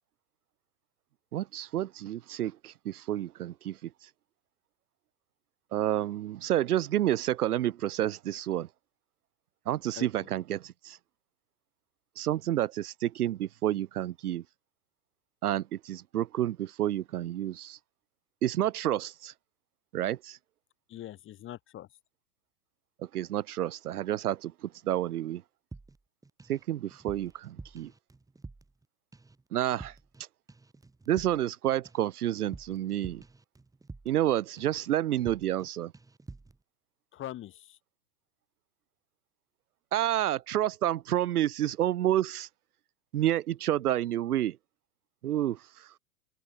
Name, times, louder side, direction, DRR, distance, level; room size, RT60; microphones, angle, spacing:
voice 1, 1.3-3.9 5.7-8.7 9.7-11.0 12.2-14.4 15.4-17.8 18.4-19.3 19.9-20.4 23.1-25.4 26.5-27.9 29.5-29.9 31.1-33.2 34.1-35.9 39.9-42.5 43.1-44.6 45.2-45.9, right 12 dB, 80° right, 0.6 m, -29 dB
voice 2, 20.9-21.9 37.1-37.8, left 13 dB, 25° left, 2.0 m, -42 dB
sound 1, 25.7-26.6 26.9-28.9 29.1-29.4 29.7-30.2 30.5-34.3 34.6-34.9 35.2-35.7 35.9-36.6, right 3 dB, 10° right, 5.1 m, -48 dB
hypercardioid pair, 110°, 44 cm